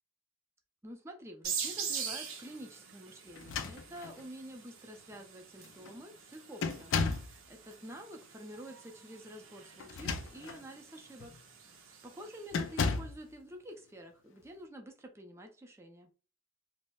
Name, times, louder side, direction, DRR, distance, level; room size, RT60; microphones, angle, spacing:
voice 1, 0.8-11.3 11.6-16.1, right 1 dB, 15° right, 3 dB, 0.4 m, -49 dB
sound 1, 1.4-12.8, right 7 dB, 70° right, 0.6 m, -44 dB
sound 2, 3.3-4.3 5.1-5.2 5.6-5.9 6.6-7.4 9.8-10.6 11.2-11.4 12.5-13.2, left 4 dB, 65° left, 0.4 m, -34 dB
3.0 x 2.0 x 3.4 m, 0.35 s
head